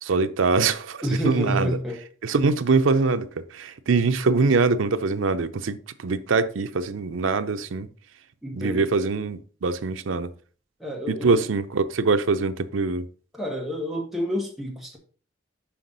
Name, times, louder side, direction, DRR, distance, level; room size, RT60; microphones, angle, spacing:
voice 1, 0.0-1.7 2.2-7.9 8.5-10.3 11.1-13.0, right 4 dB, 85° right, 0.5 m, -23 dB
voice 2, 1.0-2.0 8.4-8.9 10.8-11.4 13.3-15.0, equal, ahead, 1.4 m, -28 dB
5.8 x 5.2 x 3.9 m
head